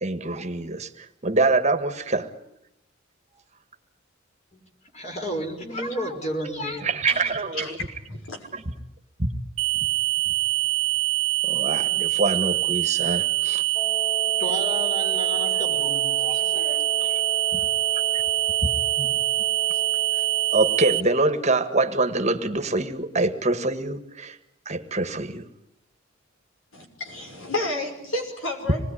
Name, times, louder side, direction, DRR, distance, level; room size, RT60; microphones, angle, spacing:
voice 1, 0.0-2.3 6.8-7.7 9.2-9.3 9.8-9.9 11.4-13.6 16.5-17.2 17.5-17.6 19.0-19.1 20.5-24.4 24.7-25.4, right 3 dB, 35° right, 8 dB, 1.6 m, -25 dB
voice 2, 4.9-7.0 14.4-16.6, equal, 35° left, 4 dB, 4.6 m, -32 dB
voice 3, 7.5-8.5 26.7-28.8, left 1 dB, 85° left, 3 dB, 6.0 m, -31 dB
sound 1, 9.6-21.0, right 19 dB, 80° right, 1.3 m, -24 dB
Wind instrument woodwind instrument, 13.7-21.6, left 3 dB, ahead, 3.0 m, -36 dB
26.0 x 20.0 x 9.8 m, 0.81 s
head